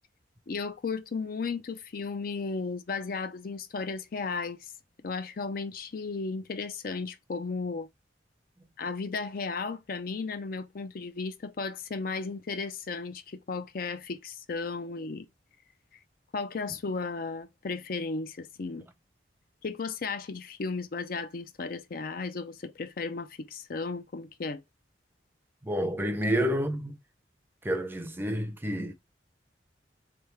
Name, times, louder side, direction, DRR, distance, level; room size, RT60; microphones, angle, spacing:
voice 1, 0.5-4.6 5.0-7.9 8.8-15.3 16.3-18.9 19.6-24.6, left 4 dB, 50° left, 0.5 m, -35 dB
voice 2, 25.6-27.0 27.6-28.9, equal, 10° right, 0.6 m, -29 dB
3.6 x 3.4 x 4.4 m
head